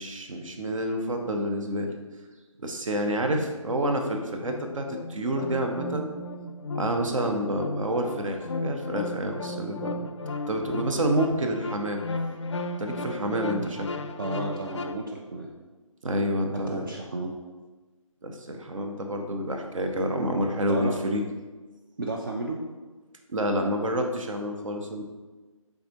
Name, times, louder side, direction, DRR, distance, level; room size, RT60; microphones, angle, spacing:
voice 1, 0.0-1.9 2.6-6.1 6.7-10.1 10.5-12.0 12.8-13.9 16.0-16.9 18.2-21.2 23.3-25.0, right 1 dB, 65° right, 4 dB, 0.7 m, -28 dB
sound 1, 3.7-14.9, left 2 dB, 55° left, 0.4 m, -35 dB
voice 2, 14.2-15.5 16.5-17.3 20.7-20.9 22.0-22.6, right 2 dB, 40° right, -1 dB, 0.4 m, -33 dB
4.8 x 3.5 x 2.6 m, 1.3 s
figure-of-eight pair, 155°, 18 cm